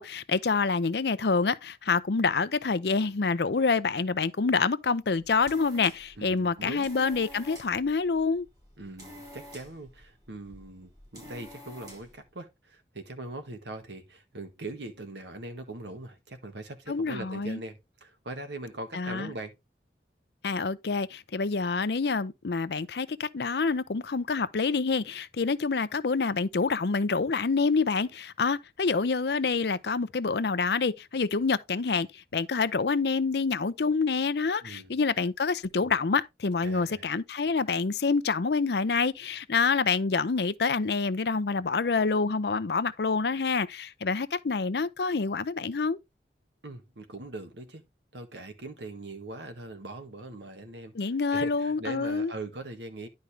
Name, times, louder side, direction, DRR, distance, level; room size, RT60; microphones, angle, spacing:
voice 1, 0.0-8.5 16.9-17.6 18.9-19.3 20.4-46.0 50.9-52.3, left 4 dB, 65° left, 0.6 m, -27 dB
sound 1, 5.2-12.2, equal, 20° right, 5.0 m, -49 dB
voice 2, 6.2-6.9 8.8-19.5 34.6-34.9 36.6-37.1 46.6-47.8 48.1-53.1, right 2 dB, 80° right, 1.7 m, -41 dB
10.5 x 5.3 x 3.3 m
head